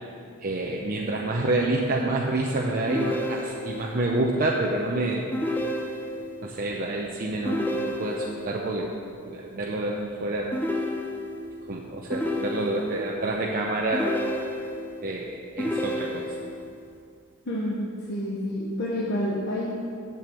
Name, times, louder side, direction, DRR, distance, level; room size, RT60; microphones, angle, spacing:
voice 1, 0.4-5.3 6.4-9.0 9.2-10.5 11.7-14.2 15.0-16.4, right 2 dB, 40° right, -2 dB, 0.7 m, -28 dB
sound 1, 2.9-3.9 5.3-6.4 7.5-8.5 10.5-11.5 12.1-13.1 13.9-15.0 15.6-16.6, left 1 dB, 10° left, 0.6 m, -30 dB
voice 2, 17.4-17.8 18.1-19.8, left 1 dB, 55° left, -5 dB, 1.2 m, -28 dB
7.6 x 6.9 x 7.6 m, 2.4 s
head